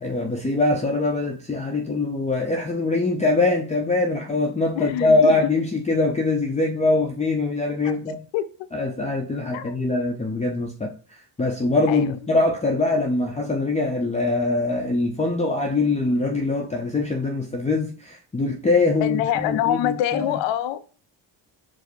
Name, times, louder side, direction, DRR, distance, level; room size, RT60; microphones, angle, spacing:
voice 1, 0.0-8.2 8.7-20.4, left 2 dB, 15° left, 0.6 m, -23 dB
voice 2, 4.7-5.4 7.8-7.9 8.3-8.4 9.5-9.8 11.9-12.1 19.0-20.8, left 11 dB, 75° left, 0.5 m, -25 dB
4.9 x 2.1 x 4.4 m
supercardioid pair, 80°, 45 cm